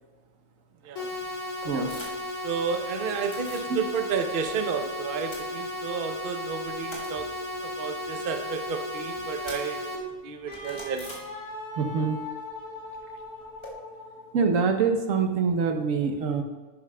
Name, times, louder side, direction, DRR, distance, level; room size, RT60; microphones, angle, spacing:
sound 1, 1.0-10.0, left 1 dB, 75° left, 1.8 m, -34 dB
sound 2, 1.6-2.4 2.6-3.7 4.1-4.9 5.1-6.1 6.5-11.8 12.1-13.7, equal, 20° left, 2.1 m, -46 dB
voice 1, 2.4-9.9 10.2-11.1, right 6 dB, 50° right, 7 dB, 0.7 m, -32 dB
Wind instrument woodwind instrument, 10.5-14.5, left 2 dB, 50° left, 2.2 m, -40 dB
voice 2, 11.8-12.2 14.3-16.4, right 5 dB, 75° right, 5 dB, 1.3 m, -25 dB
11.0 x 8.4 x 2.2 m, 1.3 s
omnidirectional pair, 1.4 m